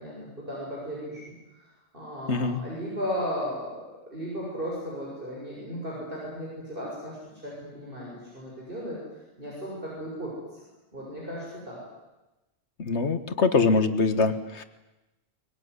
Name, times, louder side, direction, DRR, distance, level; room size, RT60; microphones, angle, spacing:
voice 1, 0.0-1.3 1.6-1.7 1.9-7.2 7.4-9.0 9.4-10.3 10.9-11.8, equal, 55° right, -5 dB, 7.2 m, -35 dB
voice 2, 2.3-2.6 12.8-14.6, left 4 dB, 85° left, 10 dB, 1.8 m, -23 dB
23.5 x 21.5 x 9.7 m, 1.0 s
omnidirectional pair, 1.1 m